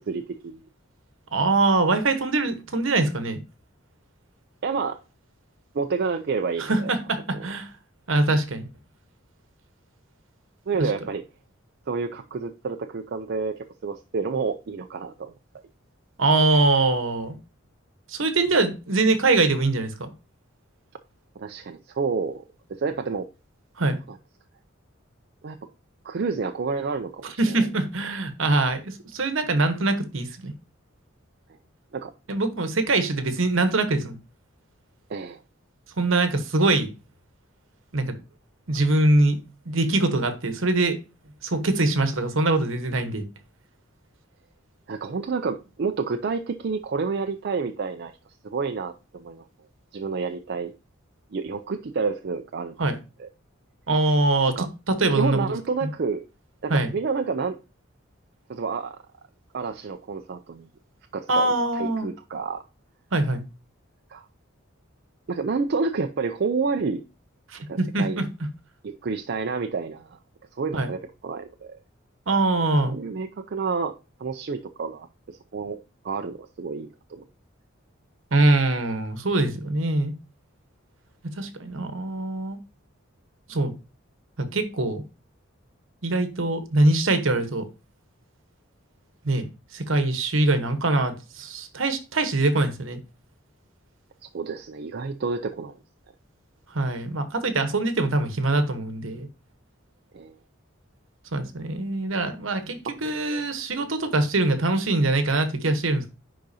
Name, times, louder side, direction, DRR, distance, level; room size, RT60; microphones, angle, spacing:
voice 1, 0.1-0.6 4.6-5.0 5.7-6.9 10.7-11.2 11.9-15.3 21.4-22.4 22.8-23.3 25.4-25.6 26.0-27.6 31.9-32.1 35.1-35.4 44.9-48.1 48.4-49.4 49.9-50.7 51.3-52.7 53.2-53.3 54.6-54.7 55.2-56.2 56.6-57.6 58.5-59.0 59.5-60.7 61.1-61.5 61.7-62.6 64.1-64.3 65.3-67.0 67.7-68.2 68.8-70.2 70.6-71.8 72.8-77.2 94.3-95.7 100.1-100.3, right 4 dB, 55° right, 0.4 m, -29 dB
voice 2, 1.3-3.4 6.6-7.7 8.1-8.7 10.8-10.9 16.2-17.4 18.1-20.1 23.8-24.0 27.2-30.5 32.3-34.2 36.0-36.9 37.9-38.2 38.7-39.4 39.6-41.0 41.4-43.3 52.8-53.0 53.9-54.6 54.9-55.5 55.8-55.9 56.7-56.9 61.3-62.1 63.1-63.4 67.5-68.3 70.7-70.9 72.3-73.0 78.3-80.1 81.4-82.6 83.5-83.7 84.4-85.0 86.0-87.7 89.2-89.5 89.7-93.0 96.7-99.3 101.3-106.1, right 2 dB, 70° right, 1.1 m, -23 dB
10.0 x 3.8 x 2.7 m
head